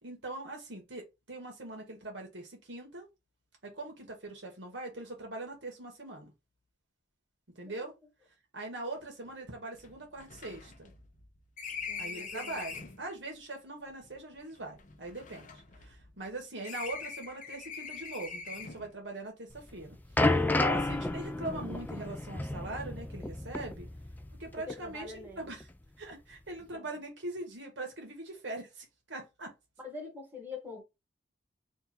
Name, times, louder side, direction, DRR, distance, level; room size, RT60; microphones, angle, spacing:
voice 1, 0.0-3.1 3.6-6.3 7.5-7.9 8.5-10.9 12.0-20.0 20.5-23.9 24.4-25.7 26.0-29.5, right 2 dB, 75° right, 1.4 m, -42 dB
sound 1, 8.9-9.0 9.3-9.4 9.7-13.0 13.9-16.3 16.6-19.0, left 5 dB, 45° left, 0.7 m, -43 dB
voice 2, 11.9-12.7 24.7-25.5 26.7-26.9 29.8-30.8, left 4 dB, 10° right, 1.4 m, -45 dB
sound 2, 19.6-24.4 24.7-24.9 25.6-25.7, left 2 dB, 10° left, 0.3 m, -31 dB
3.5 x 2.5 x 4.3 m
head